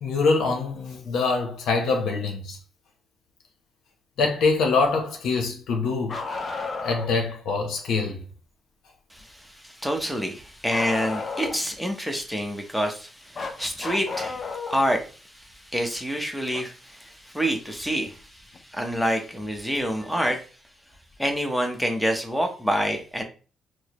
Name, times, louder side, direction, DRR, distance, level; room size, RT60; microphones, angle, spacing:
voice 1, 0.0-2.6 4.2-6.2 6.8-8.2, left 4 dB, 80° left, 0.8 m, -24 dB
Bark, 6.1-7.2 10.7-11.7 13.3-14.9 16.5-16.6 18.5-18.6 19.7-19.8, left 4 dB, 40° left, 0.6 m, -32 dB
voice 2, 9.1-20.4 21.2-23.2, equal, ahead, 0.8 m, -27 dB
4.6 x 2.1 x 3.0 m
cardioid pair, 90°, 0 cm